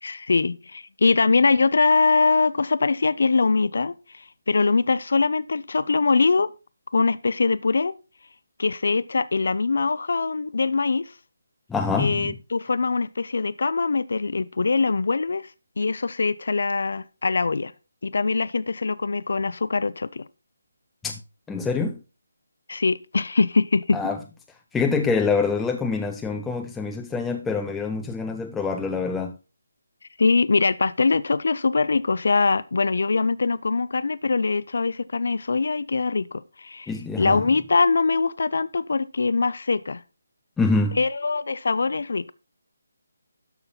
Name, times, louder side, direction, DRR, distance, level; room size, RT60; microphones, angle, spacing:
voice 1, 0.0-6.5 6.9-7.9 8.6-11.1 12.0-15.5 15.8-17.7 18.0-20.2 22.7-24.0 30.2-36.9 37.2-40.0 41.0-42.3, left 4 dB, 55° left, 0.5 m, -22 dB
voice 2, 11.7-12.3 21.0-21.2 21.5-22.0 23.9-24.2 24.7-29.3 36.9-37.4 40.6-41.0, left 4 dB, 5° left, 0.4 m, -25 dB
12.5 x 5.9 x 4.0 m
hypercardioid pair, 175°, 0 cm